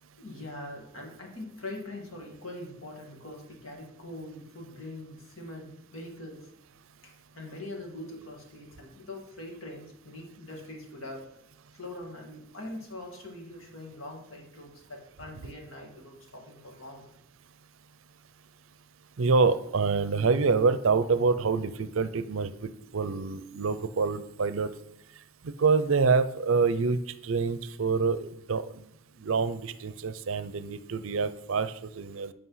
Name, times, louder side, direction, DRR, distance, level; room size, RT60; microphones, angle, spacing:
voice 1, 0.2-6.5 7.0-11.3 11.7-17.1, left 1 dB, 75° left, 1 dB, 2.1 m, -43 dB
voice 2, 19.2-24.7 25.4-27.0 27.2-28.7 29.2-32.3, right 4 dB, 70° right, 14 dB, 0.5 m, -26 dB
8.6 x 5.2 x 5.7 m, 0.81 s
head